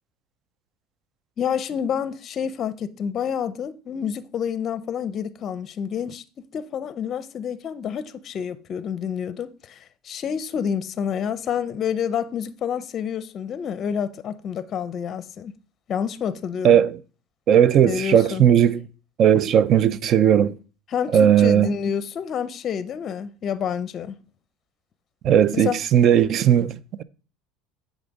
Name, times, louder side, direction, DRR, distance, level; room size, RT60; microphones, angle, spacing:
voice 1, 1.4-6.2 6.5-15.5 15.9-16.8 17.8-18.4 20.9-24.2 25.5-25.8, left 8 dB, 40° left, 0.5 m, -28 dB
voice 2, 16.6-17.0 17.5-18.8 19.2-20.5 21.1-21.7 25.2-27.0, right 9 dB, 45° right, 0.5 m, -17 dB
8.5 x 5.2 x 4.0 m
supercardioid pair, 125°, 0 cm